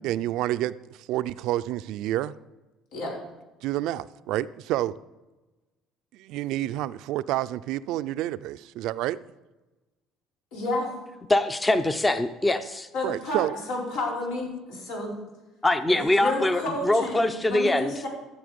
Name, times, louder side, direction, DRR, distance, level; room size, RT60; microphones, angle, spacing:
voice 1, 0.0-2.3 3.6-4.9 6.1-9.2 13.0-13.5, right 14 dB, 75° right, 15 dB, 0.4 m, -29 dB
voice 2, 10.5-10.9 12.9-13.4 13.7-15.2 15.9-18.1, left 2 dB, 85° left, -3 dB, 4.9 m, -31 dB
voice 3, 11.3-12.9 15.6-17.9, left 1 dB, 15° left, 11 dB, 0.6 m, -23 dB
14.5 x 7.1 x 5.2 m, 1.1 s
cardioid pair, 115°, 0 cm